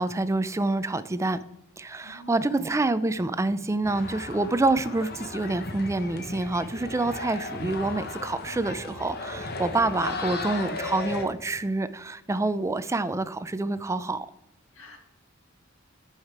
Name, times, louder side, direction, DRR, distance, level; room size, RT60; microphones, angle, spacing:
voice 1, 0.0-1.4 1.8-14.3, right 2 dB, 15° right, 14 dB, 0.4 m, -27 dB
voice 2, 2.0-2.8 14.7-15.0, equal, 75° left, 2 dB, 2.0 m, -47 dB
sound 1, 3.8-11.3, left 3 dB, 50° left, 1.1 m, -36 dB
9.5 x 5.8 x 4.7 m, 0.86 s
head